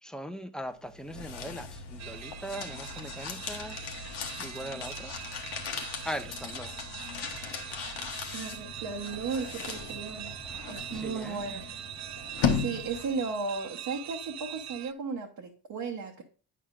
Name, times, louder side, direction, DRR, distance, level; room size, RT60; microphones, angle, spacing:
voice 1, 0.0-3.8 4.4-5.1 6.0-6.7 10.9-11.5, equal, ahead, 0.6 m, -40 dB
sound 1, 0.8-13.3, left 6 dB, 75° left, 1.0 m, -37 dB
sound 2, 2.0-14.9, right 11 dB, 45° right, 0.4 m, -43 dB
voice 2, 8.3-10.3 10.7-11.6 12.5-16.2, right 4 dB, 65° right, 1.1 m, -35 dB
8.4 x 5.6 x 2.5 m
supercardioid pair, 55°, 40 cm